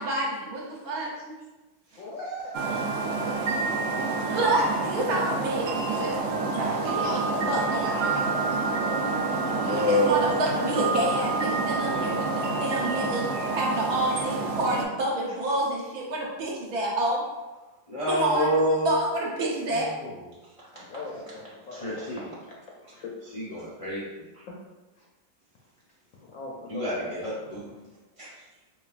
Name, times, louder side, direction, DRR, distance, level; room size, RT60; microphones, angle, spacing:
voice 1, 0.0-1.4 4.3-6.3 6.8-8.3 9.6-13.3 13.5-17.2 18.1-18.5 18.8-19.9, right 2 dB, 65° right, -3 dB, 1.2 m, -28 dB
voice 2, 2.0-2.6 7.3-8.7 10.0-10.2 10.6-10.7 20.7-22.1 22.9-23.1 24.5-24.6 25.0-25.1 26.1-27.3, left 2 dB, 70° left, -3 dB, 0.8 m, -39 dB
sound 1, 2.5-14.8, right 3 dB, 90° right, 0.6 m, -28 dB
voice 3, 9.4-10.5 17.9-18.9 19.7-20.8 21.7-22.3 23.3-24.4 26.7-27.7 28.2-28.4, equal, 40° left, -8 dB, 0.5 m, -29 dB
5.2 x 2.3 x 2.4 m, 1.2 s
omnidirectional pair, 1.8 m